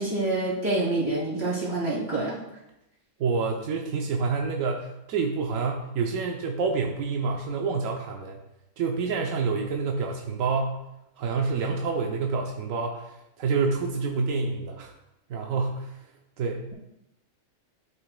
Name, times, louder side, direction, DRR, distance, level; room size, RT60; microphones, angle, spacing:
voice 1, 0.0-2.4, right 2 dB, 35° right, -8 dB, 3.2 m, -27 dB
voice 2, 3.2-8.4 8.8-10.8 11.2-14.9 15.3-16.0 16.4-16.7, right 4 dB, 85° right, 1 dB, 1.1 m, -28 dB
11.0 x 5.9 x 2.2 m, 0.89 s
omnidirectional pair, 1.4 m